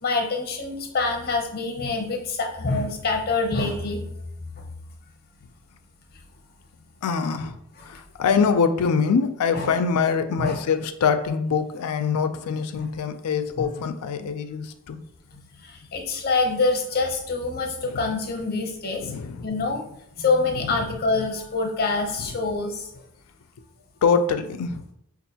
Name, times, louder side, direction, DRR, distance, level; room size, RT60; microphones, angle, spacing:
voice 1, 0.0-4.1 9.5-9.7 10.4-10.6 13.6-13.7 15.7-19.1 19.4-19.8 20.2-22.9, left 3 dB, 45° left, 2 dB, 0.7 m, -25 dB
voice 2, 7.0-7.5 7.8-15.0 17.8-18.1 19.0-19.5 20.6-20.9 22.2-22.3 24.0-24.8, left 5 dB, 90° left, 9 dB, 0.4 m, -24 dB
5.4 x 2.4 x 2.7 m, 0.75 s
head